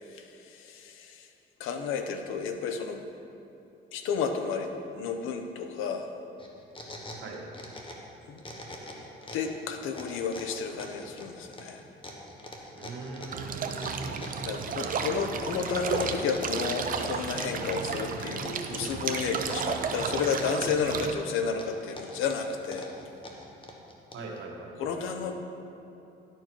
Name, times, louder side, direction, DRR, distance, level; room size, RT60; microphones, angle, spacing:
voice 1, 0.1-1.3 1.6-3.0 3.9-6.1 8.3-8.4 9.3-11.8 14.1-22.9 24.8-25.3, left 5 dB, 90° left, 6 dB, 0.7 m, -32 dB
sound 1, 6.4-8.1 8.4-9.5 9.9-14.5 15.0-15.6 15.9-18.0 18.4-19.7 20.0-21.0 21.4-24.4, left 1 dB, 25° left, 1.1 m, -44 dB
voice 2, 12.8-14.3 14.7-15.1 24.1-24.8, right 3 dB, 75° right, 0 dB, 1.3 m, -40 dB
sound 2, 13.3-21.1, right 6 dB, 45° right, 0.6 m, -33 dB
11.5 x 4.6 x 4.5 m, 2.8 s
cardioid pair, 110°, 20 cm